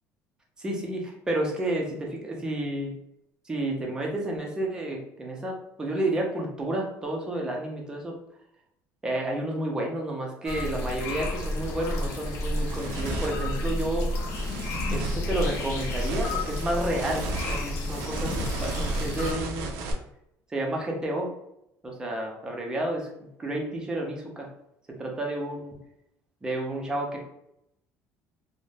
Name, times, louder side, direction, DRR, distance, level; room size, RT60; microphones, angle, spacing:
voice 1, 0.6-2.9 3.5-8.1 9.0-14.1 14.9-19.7 20.5-21.3 21.8-23.1 23.4-24.5 24.9-25.8 26.4-27.2, right 1 dB, 15° right, 0 dB, 0.5 m, -31 dB
sound 1, 10.5-19.3, left 1 dB, 55° left, 0.6 m, -31 dB
sound 2, 11.7-19.9, right 3 dB, 80° right, 0.5 m, -36 dB
2.5 x 2.1 x 3.2 m, 0.81 s
cardioid pair, 160°, 6 cm